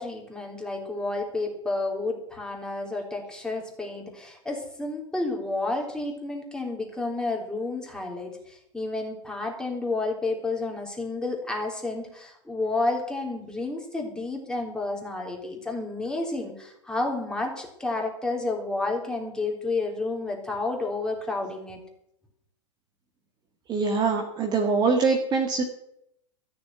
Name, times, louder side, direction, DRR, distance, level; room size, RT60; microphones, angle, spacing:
voice 1, 0.0-21.8, left 2 dB, 5° left, 0 dB, 3.5 m, -30 dB
voice 2, 23.7-25.6, right 4 dB, 25° right, 4 dB, 1.6 m, -23 dB
13.5 x 7.0 x 9.4 m, 0.77 s
figure-of-eight pair, 100°, 16 cm